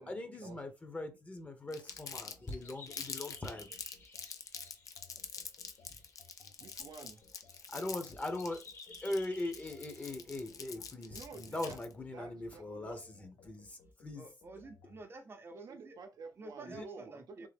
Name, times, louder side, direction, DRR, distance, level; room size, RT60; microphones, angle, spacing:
voice 1, 0.0-3.8 5.9-6.0 7.7-8.7 9.0-14.3 16.7-16.8, left 2 dB, 20° left, 1.0 m, -41 dB
Crumpling crinkling, 1.7-11.9, left 6 dB, 55° left, 0.7 m, -45 dB
sound 1, 1.9-15.0, left 3 dB, 85° left, 1.0 m, -63 dB
sound 2, 2.0-10.7, left 3 dB, 40° left, 1.2 m, -58 dB
voice 2, 6.6-7.2 11.1-11.8 12.1-13.0 15.5-17.5, right 4 dB, 65° right, 0.7 m, -50 dB
voice 3, 14.2-16.0 16.4-17.5, right 2 dB, 35° right, 0.8 m, -50 dB
3.7 x 3.6 x 3.5 m
wide cardioid pair, 145°, 7 cm